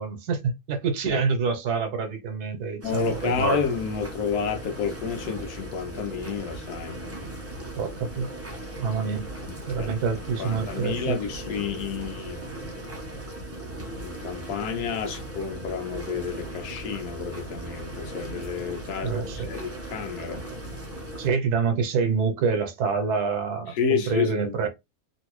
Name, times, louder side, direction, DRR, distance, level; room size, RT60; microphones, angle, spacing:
voice 1, 0.0-3.3 7.8-8.3 8.8-9.3 9.7-11.2 19.0-19.5 21.2-24.7, right 5 dB, 80° right, 1.3 m, -27 dB
voice 2, 2.8-7.0 9.8-9.9 10.4-12.5 14.0-20.4 23.7-24.6, left 6 dB, 90° left, 1.3 m, -30 dB
sound 1, 2.8-21.3, right 1 dB, 20° right, 0.4 m, -36 dB
3.0 x 2.6 x 3.0 m
omnidirectional pair, 1.6 m